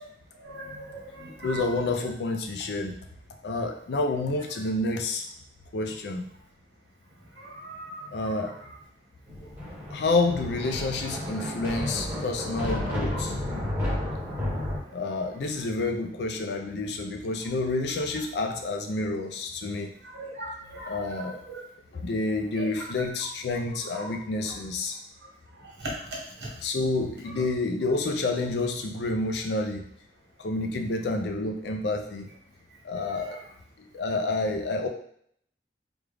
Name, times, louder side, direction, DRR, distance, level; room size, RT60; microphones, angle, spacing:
voice 1, 0.4-1.6 7.4-8.3 12.6-13.2 14.0-14.2 20.0-21.6 22.6-22.7 23.9-24.1 25.8-25.9 26.4-26.5, right 1 dB, 80° right, -3 dB, 1.1 m, -39 dB
voice 2, 1.4-2.9 3.4-5.2 5.7-6.3 8.1-8.5 9.9-13.3 14.9-19.9 20.9-21.4 21.9-25.0 26.6-29.8 30.4-32.3 32.8-33.4 33.8-34.9, left 2 dB, 70° left, 4 dB, 0.4 m, -29 dB
Thunder, 9.3-14.8, left 1 dB, 10° right, 0.8 m, -32 dB
3.4 x 2.3 x 3.3 m, 0.65 s
head